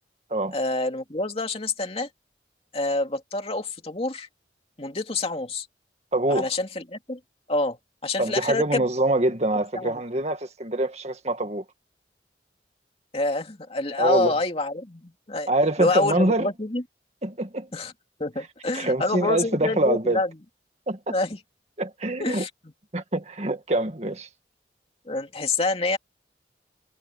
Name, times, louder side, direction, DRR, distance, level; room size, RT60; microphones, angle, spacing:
voice 1, 0.5-2.1 2.7-4.3 4.8-5.7 6.3-7.2 7.5-8.8 9.7-9.9 13.1-15.5 15.8-16.8 17.7-17.9 18.2-20.3 21.1-21.4 22.2-22.5 25.1-26.0, left 2 dB, 35° left, 2.6 m, -27 dB
voice 2, 6.1-6.5 8.2-11.6 14.0-14.3 15.5-16.5 17.2-17.7 18.7-20.2 20.9-21.1 21.8-22.5 22.9-24.3, right 2 dB, 40° right, 2.0 m, -25 dB
head